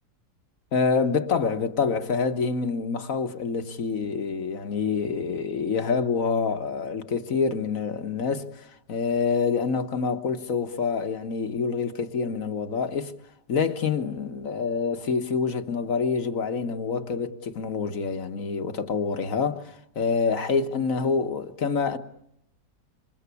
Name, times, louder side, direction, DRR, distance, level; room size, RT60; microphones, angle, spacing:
voice 1, 0.7-13.1 13.5-22.0, left 5 dB, 55° left, 1.6 m, -27 dB
27.5 x 25.0 x 8.4 m
omnidirectional pair, 1.8 m